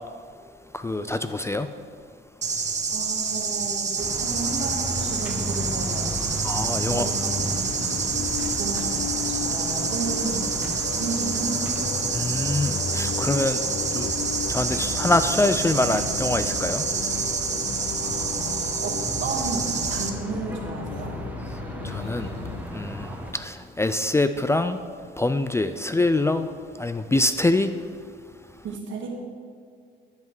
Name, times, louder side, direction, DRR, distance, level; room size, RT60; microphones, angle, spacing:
voice 1, 0.7-1.7 6.4-7.1 12.1-13.6 13.9-14.1 14.5-16.8 21.8-22.3 22.7-24.8 25.2-26.5 26.8-27.7, left 2 dB, 15° left, 10 dB, 0.3 m, -24 dB
sound 1, 2.4-20.1, right 5 dB, 35° right, 0.9 m, -28 dB
voice 2, 2.9-6.1 6.9-7.8 8.5-11.6 18.0-21.1 28.6-29.1, right 4 dB, 75° right, 0 dB, 1.6 m, -33 dB
sound 2, 4.0-23.3, equal, 10° right, 1.0 m, -35 dB
sound 3, 6.7-22.6, left 8 dB, 70° left, 0.5 m, -36 dB
10.5 x 5.6 x 4.7 m, 2.1 s
cardioid pair, 90°, 20 cm